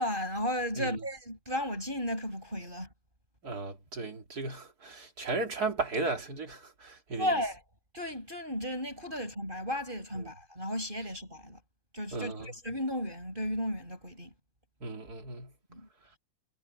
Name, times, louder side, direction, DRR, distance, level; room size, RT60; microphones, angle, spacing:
voice 1, 0.0-2.9 7.2-7.6 7.9-11.6 11.9-14.3 15.7-15.9, equal, 15° right, 7.5 m, -34 dB
voice 2, 3.4-7.3 12.1-12.5 14.8-15.5, right 3 dB, 30° right, 2.5 m, -35 dB
omnidirectional pair, 3.8 m